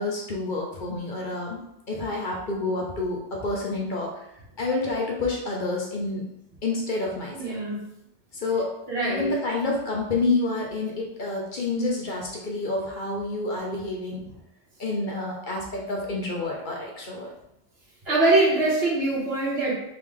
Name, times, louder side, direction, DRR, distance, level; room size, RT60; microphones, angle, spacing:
voice 1, 0.0-1.6 1.9-4.1 4.6-6.3 6.6-7.6 8.4-8.7 9.0-14.3 14.8-17.3, left 2 dB, 50° left, -2 dB, 0.9 m, -28 dB
voice 2, 7.3-7.8 8.9-9.3 18.0-19.7, right 2 dB, 65° right, -5 dB, 1.7 m, -23 dB
3.6 x 3.3 x 3.6 m, 0.82 s
omnidirectional pair, 1.1 m